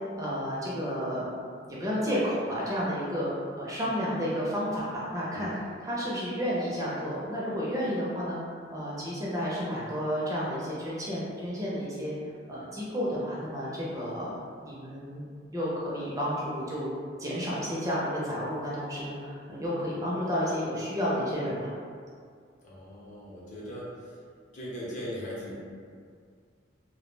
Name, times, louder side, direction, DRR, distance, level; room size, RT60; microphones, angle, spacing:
voice 1, 0.2-1.3 1.7-5.5 5.8-8.4 8.7-12.1 12.5-14.3 14.6-15.2 15.5-16.9 17.2-21.7, equal, 20° right, -7 dB, 0.4 m, -31 dB
voice 2, 22.6-24.1 24.5-25.5, equal, 45° left, -6 dB, 0.6 m, -39 dB
2.2 x 2.0 x 3.1 m, 2.1 s
head